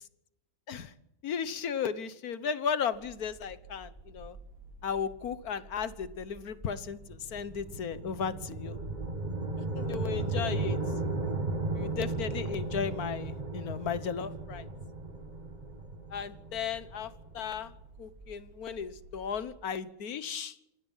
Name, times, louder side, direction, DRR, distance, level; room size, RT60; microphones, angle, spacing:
voice 1, 1.2-4.4 4.8-8.8 9.6-10.8 11.7-14.6 16.1-17.7 18.0-20.5, left 7 dB, 55° left, 14 dB, 1.5 m, -35 dB
sound 1, 2.9-19.5, right 3 dB, 80° right, 5.1 m, -51 dB
sound 2, 7.0-17.3, right 2 dB, 25° right, 1.6 m, -35 dB
27.0 x 20.0 x 5.7 m, 0.84 s
omnidirectional pair, 2.2 m